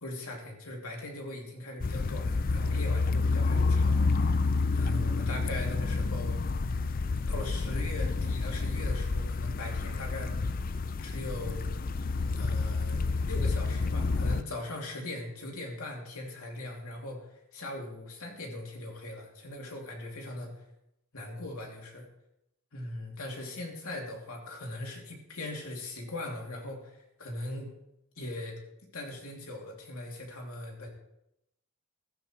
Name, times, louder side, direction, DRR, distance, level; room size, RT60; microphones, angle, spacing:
voice 1, 0.0-6.4 7.3-10.3 11.0-11.7 12.4-20.5 21.1-22.1 22.7-27.8 28.2-28.6 28.9-30.9, left 1 dB, 80° left, 0 dB, 2.8 m, -40 dB
sound 1, 1.8-14.4, left 3 dB, 40° left, 0.4 m, -29 dB
15.0 x 13.0 x 3.2 m, 0.82 s
head